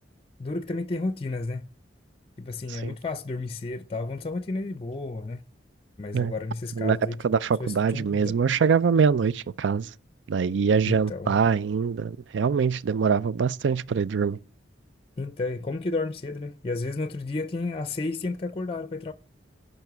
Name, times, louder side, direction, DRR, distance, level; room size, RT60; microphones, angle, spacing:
voice 1, 0.4-1.6 2.4-5.4 6.0-7.2 7.6-8.4 10.9-11.4 15.2-19.1, left 3 dB, 30° left, 0.5 m, -32 dB
voice 2, 7.2-9.9 10.3-14.4, right 6 dB, 75° right, 0.4 m, -24 dB
11.0 x 5.4 x 6.8 m
head